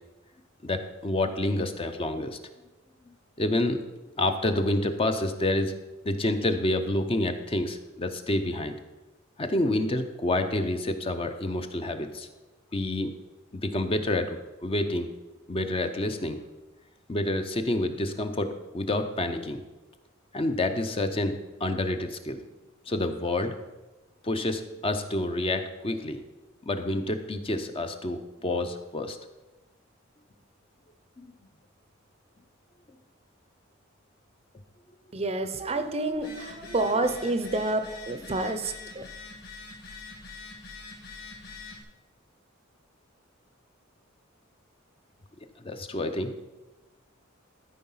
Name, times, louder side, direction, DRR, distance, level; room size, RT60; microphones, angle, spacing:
voice 1, 0.6-2.4 3.4-3.8 4.2-5.7 6.0-8.8 9.4-12.3 12.7-13.1 13.6-15.1 15.5-16.4 17.1-19.6 20.3-22.4 22.9-23.5 24.2-26.2 26.7-29.2 31.2-31.3 45.6-46.3, left 1 dB, 25° left, 7 dB, 0.6 m, -28 dB
voice 2, 35.1-39.0, right 2 dB, 30° right, 9 dB, 0.6 m, -29 dB
Telephone, 36.1-41.8, left 4 dB, 50° left, 2.3 m, -44 dB
13.0 x 4.7 x 5.5 m, 1.1 s
head